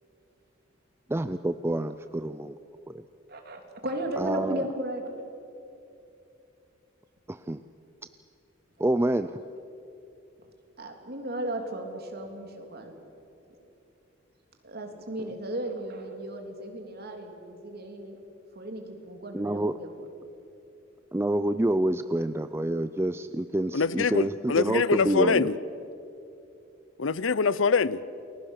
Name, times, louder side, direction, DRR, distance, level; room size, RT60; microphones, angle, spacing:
voice 1, 1.1-2.5 2.9-3.0 4.2-4.6 7.3-7.6 8.8-9.4 19.3-19.8 21.1-25.5, right 1 dB, 15° right, 11 dB, 0.5 m, -27 dB
voice 2, 3.3-5.0 10.8-12.9 14.6-18.2 18.5-20.1, right 1 dB, 55° right, 3 dB, 3.3 m, -35 dB
voice 3, 23.7-25.6 27.0-28.0, left 4 dB, 75° left, 18 dB, 0.7 m, -24 dB
29.5 x 21.5 x 6.6 m, 2.8 s
head